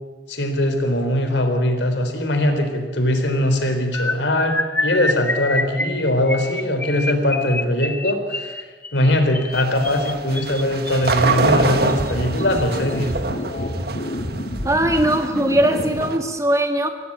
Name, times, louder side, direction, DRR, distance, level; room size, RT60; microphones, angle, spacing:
voice 1, 0.3-4.6 4.8-8.6 8.9-13.1, left 1 dB, 90° left, 6 dB, 3.8 m, -21 dB
sound 1, 3.9-11.1 11.9-12.1 12.4-12.6 12.9-13.1, left 2 dB, 10° left, 0.7 m, -27 dB
sound 2, 9.5-16.2, right 3 dB, 60° right, 1.6 m, -26 dB
sound 3, 11.0-16.0, equal, 50° left, 2.8 m, -28 dB
voice 2, 14.6-16.9, right 1 dB, 20° right, 5 dB, 1.9 m, -20 dB
25.0 x 16.5 x 8.8 m, 1.4 s
head